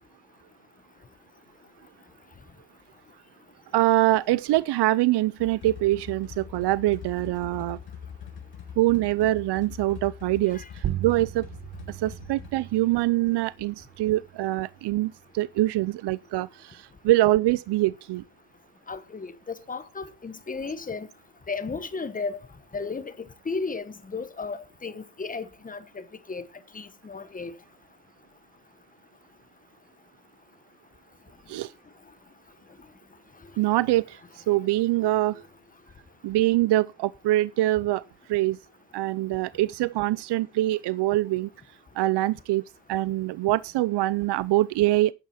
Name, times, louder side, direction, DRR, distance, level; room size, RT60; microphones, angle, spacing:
voice 1, 3.7-7.8 8.8-11.5 11.9-18.2 31.5-31.7 33.6-35.4 36.2-38.0 38.3-38.6 38.9-41.5 42.0-45.1, right 16 dB, 80° right, 0.6 m, -24 dB
sound 1, 5.4-12.5, left 8 dB, 65° left, 3.0 m, -43 dB
sound 2, 10.8-15.9, right 12 dB, 50° right, 1.0 m, -38 dB
voice 2, 18.9-19.3 19.7-21.1 21.5-22.4 22.7-26.4 26.7-27.5, left 4 dB, 20° left, 1.1 m, -34 dB
11.5 x 9.1 x 4.3 m
cardioid pair, 155°, 40 cm